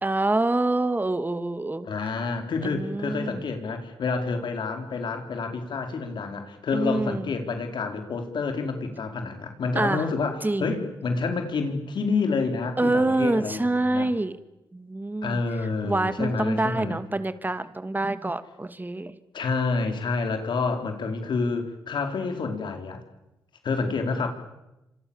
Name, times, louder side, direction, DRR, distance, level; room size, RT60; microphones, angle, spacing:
voice 1, 0.0-1.9 2.6-3.4 6.7-7.3 9.8-10.0 10.4-10.8 12.8-14.4 14.7-15.4 15.8-19.2, right 2 dB, 20° right, 12 dB, 2.3 m, -26 dB
voice 2, 1.8-14.1 15.2-17.0 19.3-23.0 23.6-24.3, left 4 dB, 70° left, 5 dB, 4.7 m, -28 dB
29.0 x 26.5 x 7.4 m, 0.94 s
supercardioid pair, 50°, 8 cm